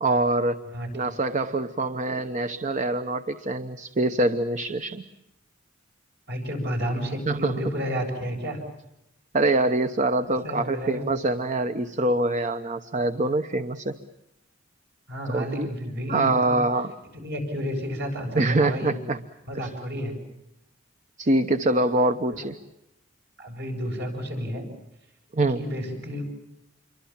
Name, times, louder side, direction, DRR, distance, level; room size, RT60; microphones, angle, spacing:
voice 1, 0.0-0.6 0.9-5.0 7.3-7.5 9.3-14.0 15.3-15.7 16.1-16.9 18.4-19.2 21.2-22.5 25.3-25.6, right 2 dB, 40° right, 9 dB, 0.9 m, -24 dB
voice 2, 0.7-1.1 6.3-8.6 10.2-11.0 15.1-16.6 17.1-19.0 19.5-20.2 22.3-22.4 23.4-24.7 25.5-26.2, equal, 55° right, 3 dB, 7.6 m, -31 dB
27.5 x 23.5 x 7.2 m, 0.88 s
head